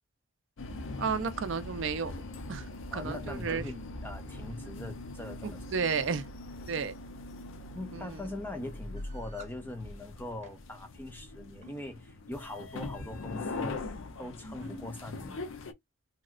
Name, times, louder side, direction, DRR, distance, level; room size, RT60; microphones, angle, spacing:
sound 1, 0.6-15.7, left 2 dB, 65° left, 0.5 m, -42 dB
voice 1, 1.0-2.2 2.5-2.7 2.9-3.6 5.7-6.3 6.7-6.9 7.9-8.2, right 5 dB, 60° right, 0.4 m, -32 dB
voice 2, 2.9-5.6 7.7-13.9 14.2-15.5, left 1 dB, 10° left, 0.5 m, -42 dB
sound 2, 9.0-9.6 10.2-10.6 11.6-11.8 12.5-12.9 13.7-13.8 14.1-14.2 15.0-15.2, right 2 dB, 30° right, 0.9 m, -55 dB
3.0 x 2.8 x 2.4 m
head